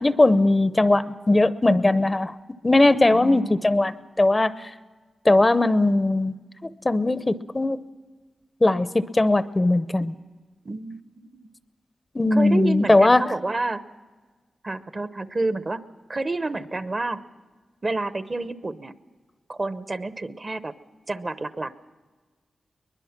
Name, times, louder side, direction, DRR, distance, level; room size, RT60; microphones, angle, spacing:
voice 1, 0.0-2.3 2.6-4.7 5.2-6.3 6.6-7.8 8.6-10.1 12.1-13.2, left 2 dB, 25° left, 14 dB, 0.6 m, -19 dB
voice 2, 3.1-3.6 10.6-11.5 12.3-13.8 14.6-15.8 16.1-17.2 17.8-18.9 19.5-20.7 21.1-21.8, right 2 dB, 40° right, 13 dB, 0.8 m, -29 dB
22.5 x 20.5 x 5.9 m, 1.4 s
cardioid pair, 65°, 0 cm